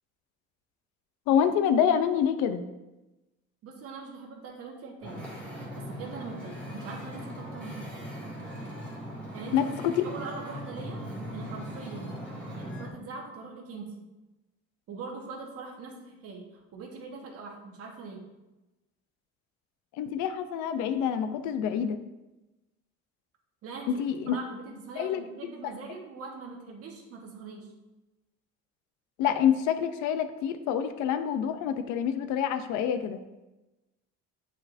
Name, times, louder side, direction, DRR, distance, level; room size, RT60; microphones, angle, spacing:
voice 1, 1.3-2.6 9.5-10.0 19.9-22.0 23.9-24.4 25.0-25.2 29.2-33.2, left 8 dB, 80° left, 9 dB, 0.6 m, -27 dB
voice 2, 3.6-5.2 5.8-7.9 9.3-9.7 10.0-11.0 11.3-12.2 12.5-13.9 14.9-18.2 23.6-27.7, right 4 dB, 50° right, 1 dB, 1.3 m, -42 dB
Wind / Ocean, 5.0-12.9, equal, 5° left, 1.7 m, -39 dB
8.0 x 4.6 x 2.6 m, 1.0 s
cardioid pair, 130°, 29 cm